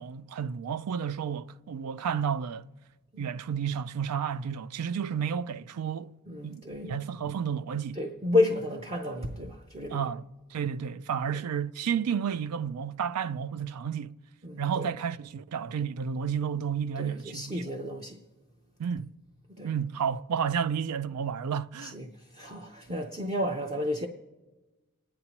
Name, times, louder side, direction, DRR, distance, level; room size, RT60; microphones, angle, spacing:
voice 1, 0.0-2.7 3.2-6.1 6.4-8.0 9.9-10.3 10.5-14.1 14.6-17.5 18.8-19.1 19.6-21.9, right 7 dB, 85° right, 0.4 m, -31 dB
voice 2, 6.3-6.9 7.9-10.1 11.3-11.4 14.4-14.9 17.0-18.2 19.5-19.7 21.8-24.1, left 2 dB, 30° right, 0.6 m, -31 dB
28.0 x 9.5 x 2.9 m
head